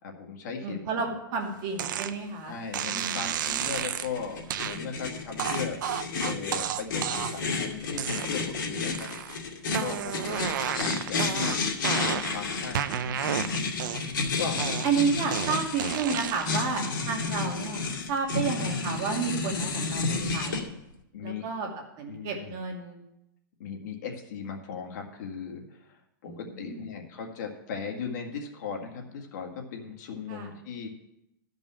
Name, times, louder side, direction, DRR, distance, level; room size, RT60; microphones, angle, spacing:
voice 1, 0.0-1.2 2.5-5.8 6.2-9.1 9.8-11.6 11.9-13.3 14.4-14.6 15.0-15.1 21.1-21.4 22.1-22.6 23.6-30.9, left 6 dB, 55° left, 2 dB, 2.0 m, -38 dB
voice 2, 0.6-2.6 2.9-3.2 10.3-10.5 14.8-17.8 18.1-20.7 21.2-21.7 22.0-23.0 26.3-26.8 30.3-30.5, right 5 dB, 35° right, 0 dB, 2.3 m, -31 dB
sound 1, 1.8-2.1 2.7-4.1 4.5-4.8 5.4-7.5 7.9-8.6 8.9-9.4 9.7-12.4 12.7-14.2 14.6-16.6, right 10 dB, 65° right, 0.6 m, -32 dB
sound 2, 3.4-20.6, left 4 dB, 75° left, 2.3 m, -31 dB
13.0 x 5.3 x 7.3 m, 0.84 s
hypercardioid pair, 155°, 11 cm